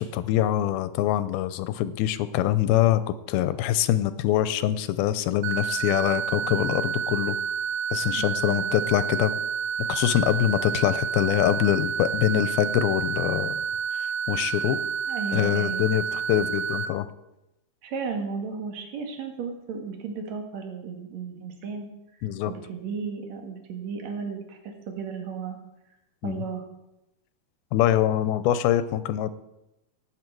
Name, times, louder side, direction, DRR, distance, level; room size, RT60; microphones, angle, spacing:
voice 1, 0.0-3.0 3.3-7.4 7.9-9.4 9.9-13.6 14.0-14.8 15.3-17.1 22.2-22.5 26.2-26.4 27.7-29.3, left 12 dB, 80° left, 13 dB, 2.4 m, -24 dB
sound 1, 5.4-16.9, right 7 dB, 90° right, 2.7 m, -29 dB
voice 2, 8.1-8.7 15.1-15.9 17.8-21.9 22.5-25.6 26.2-26.6, right 5 dB, 55° right, 3 dB, 2.6 m, -34 dB
18.0 x 8.6 x 4.6 m, 0.92 s
omnidirectional pair, 4.5 m